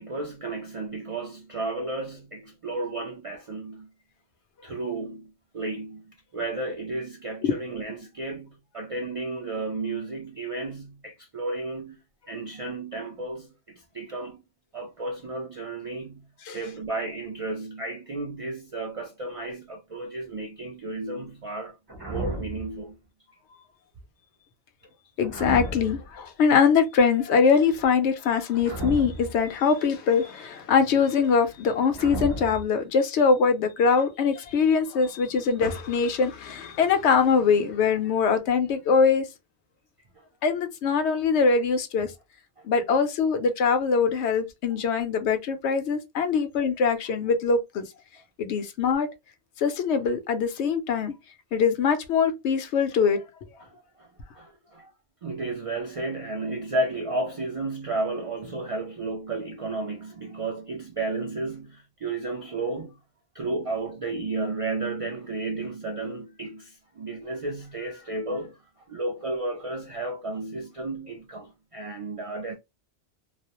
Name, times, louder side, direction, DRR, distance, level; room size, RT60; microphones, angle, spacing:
voice 1, 0.0-3.9 4.6-12.0 12.3-14.4 14.7-21.8 22.1-23.0 40.2-40.3 53.6-54.1 54.4-54.9 55.2-63.0 63.3-68.6 68.9-72.5, right 2 dB, 65° right, 0.3 m, -33 dB
sound 1, 21.9-22.8 25.2-26.1 28.5-29.5 31.9-32.6, right 2 dB, 25° right, 0.6 m, -33 dB
voice 2, 25.2-39.3 40.4-42.1 42.6-47.9 48.4-49.1 49.6-51.1 51.5-53.2, left 5 dB, 85° left, 0.9 m, -23 dB
2.4 x 2.0 x 2.8 m
omnidirectional pair, 1.1 m